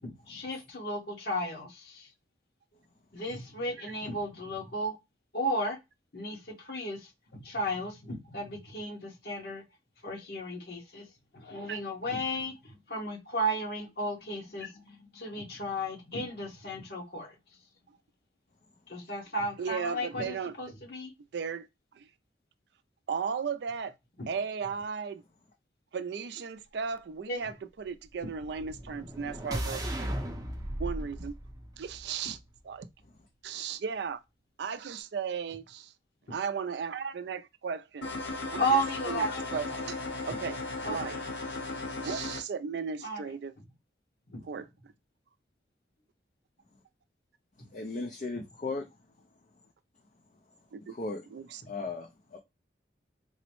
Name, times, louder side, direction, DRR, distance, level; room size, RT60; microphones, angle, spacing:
voice 1, 0.0-2.1 3.1-5.0 5.3-5.8 6.1-6.4 6.6-7.0 7.3-9.6 10.0-11.0 11.3-17.3 18.9-21.1 24.2-24.3 27.3-27.4 28.2-28.3 38.6-39.8 40.8-41.0 43.0-43.2 44.3-44.4, equal, 60° left, 1.2 m, -34 dB
voice 2, 19.6-20.6 21.3-21.7 22.0-22.1 23.1-23.9 24.3-25.2 25.9-30.1 30.8-31.4 31.8-32.4 32.6-32.9 33.4-34.2 34.6-35.9 36.3-38.1 38.5-40.6 40.8-41.2 42.0-43.5 44.4-44.7 50.7-51.0 51.3-51.6, right 6 dB, 70° right, 0.4 m, -36 dB
sound 1, 28.4-32.6, right 1 dB, 20° right, 0.6 m, -37 dB
sound 2, 38.0-42.4, left 2 dB, 75° left, 0.9 m, -36 dB
voice 3, 47.7-48.9 50.9-51.2 51.7-52.4, left 3 dB, 40° left, 0.5 m, -36 dB
3.9 x 2.0 x 3.0 m
head